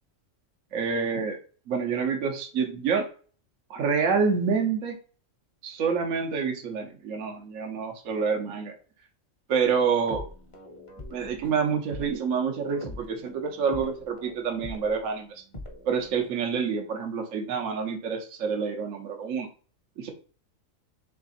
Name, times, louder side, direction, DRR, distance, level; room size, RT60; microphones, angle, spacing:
voice 1, 0.7-1.4 1.7-3.1 3.7-5.0 5.6-8.8 9.5-10.3 11.1-15.3 15.8-19.5 20.0-20.1, right 6 dB, 70° right, 3 dB, 1.2 m, -27 dB
sound 1, 9.6-16.3, left 1 dB, 30° left, 0.8 m, -43 dB
3.5 x 3.3 x 4.0 m, 0.40 s
omnidirectional pair, 1.4 m